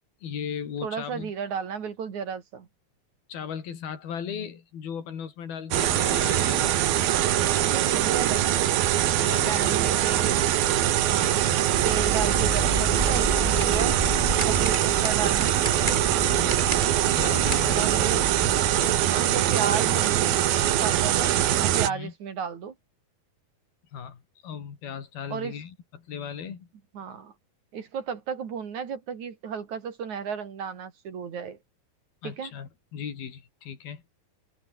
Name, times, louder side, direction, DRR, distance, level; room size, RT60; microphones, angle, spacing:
voice 1, 0.2-1.3 3.3-7.0 9.1-10.0 11.2-11.6 16.1-16.7 17.2-18.0 21.9-22.1 23.9-26.7 32.2-34.0, left 7 dB, 80° left, 5.4 m, -37 dB
voice 2, 0.8-2.7 7.6-8.7 9.2-10.5 10.9-11.4 11.8-13.9 14.5-15.6 17.7-18.3 19.1-20.4 20.8-22.7 25.3-25.5 26.9-27.3 27.7-31.6 32.2-32.5, right 6 dB, 55° right, 3.7 m, -33 dB
sound 1, 5.7-21.9, right 12 dB, 80° right, 3.4 m, -23 dB
sound 2, 11.7-19.0, right 1 dB, 10° right, 4.5 m, -31 dB
omnidirectional pair, 4.2 m